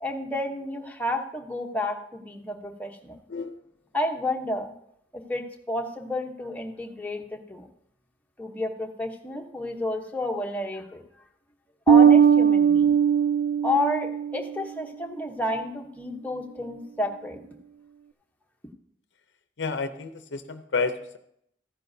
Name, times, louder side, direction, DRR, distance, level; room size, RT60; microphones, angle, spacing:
voice 1, 0.0-3.2 3.9-4.7 5.1-7.7 8.4-11.0 11.9-12.9 13.6-17.4, left 1 dB, 10° left, 1 dB, 0.9 m, -30 dB
voice 2, 3.3-3.6 19.6-21.2, left 4 dB, 70° left, 9 dB, 0.6 m, -30 dB
Bass guitar, 11.9-14.5, right 7 dB, 55° right, 0.4 m, -19 dB
14.0 x 9.9 x 2.7 m, 0.74 s
head